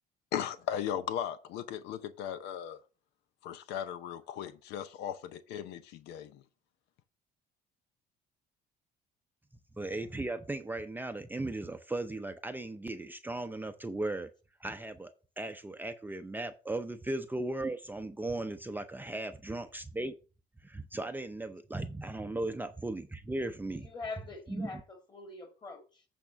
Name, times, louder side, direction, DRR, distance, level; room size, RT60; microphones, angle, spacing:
voice 1, 0.3-2.8 3.4-6.4, left 10 dB, 90° left, 0.7 m, -37 dB
voice 2, 9.8-14.3 14.6-20.2 20.6-23.9 24.5-24.7, right 2 dB, 10° right, 0.6 m, -37 dB
voice 3, 23.7-26.1, left 3 dB, 25° left, 2.4 m, -44 dB
8.5 x 3.7 x 6.8 m
cardioid pair, 110°, 17 cm